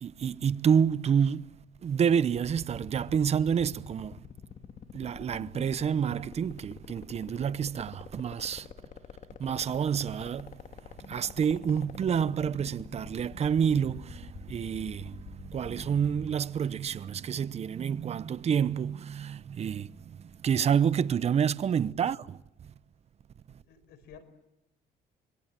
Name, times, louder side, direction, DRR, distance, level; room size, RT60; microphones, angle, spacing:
voice 1, 0.0-1.5 1.8-4.2 4.9-8.7 9.4-10.6 11.0-22.4, right 7 dB, 40° right, 0.9 m, -28 dB
sound 1, 2.4-16.3, left 7 dB, 50° left, 2.3 m, -46 dB
voice 2, 21.8-22.2 23.6-24.3, left 8 dB, 75° left, 5.1 m, -53 dB
26.5 x 23.0 x 7.6 m
cardioid pair, 110°, 17 cm